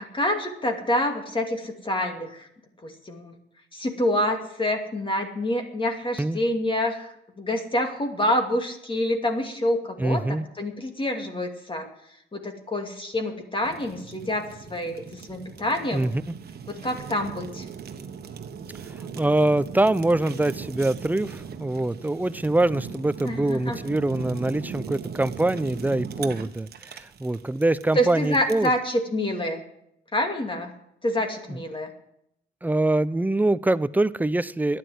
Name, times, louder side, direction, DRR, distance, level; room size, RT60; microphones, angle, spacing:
voice 1, 0.1-2.5 2.8-3.3 3.7-7.1 7.4-11.9 12.3-16.1 16.7-17.6 23.2-23.8 27.9-29.6 30.1-30.7 31.0-31.9, left 1 dB, 25° left, 3 dB, 2.6 m, -27 dB
voice 2, 10.0-10.4 15.9-16.4 19.2-28.7 31.5-31.6 32.6-34.8, right 2 dB, 10° right, 17 dB, 0.5 m, -24 dB
Fire, 13.6-28.8, right 6 dB, 55° right, 1.4 m, -39 dB
12.0 x 10.5 x 7.9 m, 0.76 s
cardioid pair, 90°, 20 cm